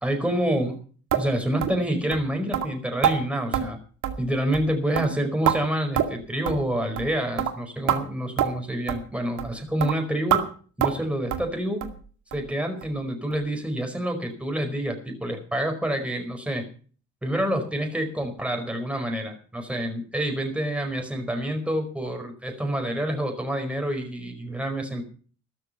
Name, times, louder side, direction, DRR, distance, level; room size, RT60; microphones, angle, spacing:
voice 1, 0.0-0.7 1.2-3.8 4.2-10.4 10.8-11.8 12.3-16.6 17.2-25.0, right 1 dB, 5° right, 4 dB, 4.9 m, -27 dB
sound 1, 1.1-1.3 1.6-1.8 2.1-2.2 2.5-2.7 3.0-3.2 3.5-3.7 4.0-4.3 4.5-4.7 5.0-5.6 6.0-6.2 6.5-6.6 7.0-7.1 7.4-7.5 7.9-8.0 8.4-8.5 8.9-9.0 9.4-9.5 9.8-9.9 10.3-10.4 10.8-11.0 11.3-11.5 11.8-12.0 12.3-12.4 12.8-12.9 13.3-13.4, right 10 dB, 80° right, 2.4 m, -25 dB
13.5 x 12.5 x 5.9 m, 0.42 s
cardioid pair, 90°, 30 cm